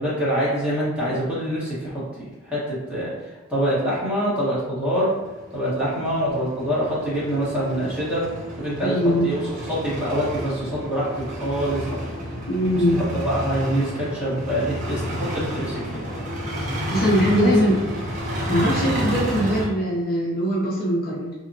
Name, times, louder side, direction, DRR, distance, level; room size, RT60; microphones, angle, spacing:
voice 1, 0.0-3.1 3.5-5.1 5.5-8.3 8.6-9.0 9.2-9.4 9.7-11.1 11.4-12.0 13.0-16.0 17.4-17.5, equal, 5° right, -9 dB, 0.8 m, -25 dB
sound 1, 5.1-19.7, equal, 35° right, 0.5 m, -31 dB
voice 2, 8.8-9.3 12.5-13.0 16.9-17.8 18.5-21.3, equal, 40° left, -4 dB, 0.4 m, -21 dB
2.8 x 2.1 x 2.5 m, 1.2 s
head